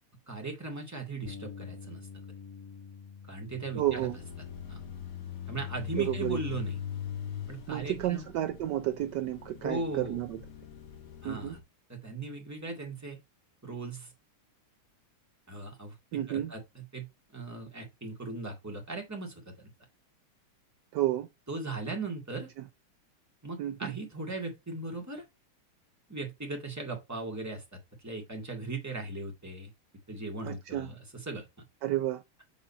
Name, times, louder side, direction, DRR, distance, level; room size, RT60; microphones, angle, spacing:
voice 1, 0.3-2.0 3.3-4.1 4.7-4.8 5.5-6.8 7.5-8.2 9.6-10.2 11.2-11.6 11.9-13.2 13.6-14.1 15.5-16.0 16.3-17.1 17.3-19.7 21.5-22.5 23.4-25.2 26.1-27.6 28.0-29.7 30.1-31.5, right 3 dB, 10° right, 1.9 m, -38 dB
Bass guitar, 1.2-7.5, left 5 dB, 15° left, 0.9 m, -49 dB
voice 2, 3.7-4.2 6.0-6.4 7.7-10.4 11.2-11.5 16.1-16.5 20.9-21.3 22.6-22.7 23.6-23.9 30.4-30.9 31.8-32.2, right 13 dB, 80° right, 0.9 m, -31 dB
sound 1, 3.8-11.6, left 9 dB, 55° left, 1.6 m, -41 dB
7.3 x 3.9 x 4.1 m
omnidirectional pair, 2.4 m